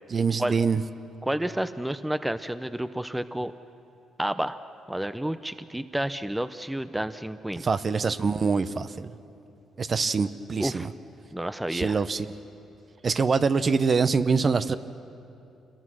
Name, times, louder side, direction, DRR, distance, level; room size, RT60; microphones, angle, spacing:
voice 1, 0.1-0.8 7.6-9.1 9.8-10.9 11.7-12.3 13.0-14.8, right 5 dB, 40° right, 12 dB, 0.8 m, -24 dB
voice 2, 1.2-3.5 4.2-4.6 4.9-7.7 10.6-10.9 11.3-12.0, right 1 dB, 5° right, 12 dB, 0.6 m, -30 dB
26.5 x 22.5 x 6.3 m, 2.7 s
cardioid pair, 90°, 0 cm